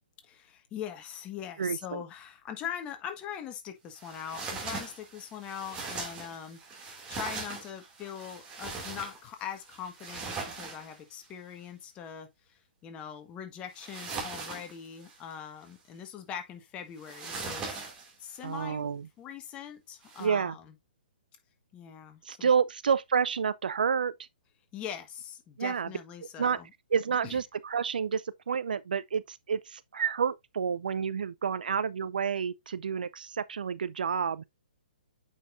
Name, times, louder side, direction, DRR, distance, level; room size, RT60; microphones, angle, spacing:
voice 1, 0.2-17.8 18.2-18.9 19.2-20.6 21.7-22.5 24.7-26.7 27.2-27.4, left 9 dB, 20° left, 1.4 m, -42 dB
voice 2, 1.6-2.0 18.4-19.1 20.2-20.6 22.3-24.1 25.6-25.9 26.4-26.6 26.9-34.4, right 6 dB, 65° right, 0.5 m, -29 dB
sound 1, 4.0-11.3 13.8-15.3 17.0-18.4 20.0-20.3, right 4 dB, 20° right, 2.3 m, -40 dB
8.6 x 5.4 x 2.5 m
figure-of-eight pair, 125°, 5 cm